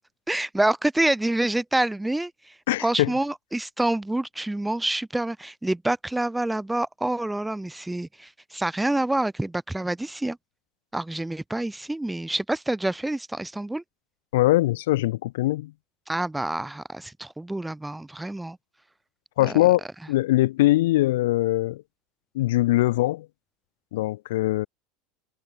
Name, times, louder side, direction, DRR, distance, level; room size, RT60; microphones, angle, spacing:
voice 1, 0.3-2.3 2.8-10.4 10.9-13.8 16.1-18.6 19.4-19.7, right 1 dB, 5° right, 6.2 m, -27 dB
voice 2, 2.7-3.1 14.3-15.7 19.4-19.8 20.1-21.8 22.3-23.3 23.9-24.7, left 17 dB, 85° left, 2.0 m, -22 dB
supercardioid pair, 155°, 0 cm